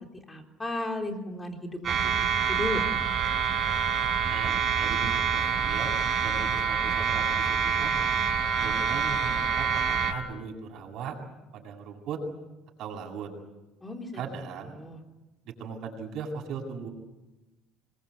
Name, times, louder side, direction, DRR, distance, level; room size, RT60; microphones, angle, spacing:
voice 1, 0.0-2.1 2.5-2.8 13.8-14.2 14.7-15.0, left 2 dB, 10° left, 3 dB, 3.7 m, -35 dB
sound 1, 1.8-10.1, right 6 dB, 30° right, 5.6 m, -26 dB
voice 2, 4.3-5.9 6.2-7.5 7.8-8.2 8.6-11.2 11.5-12.2 12.8-13.3 14.1-14.7 15.6-16.9, right 6 dB, 50° right, 1 dB, 7.7 m, -38 dB
26.5 x 22.0 x 8.4 m, 1.1 s
cardioid pair, 155°, 0 cm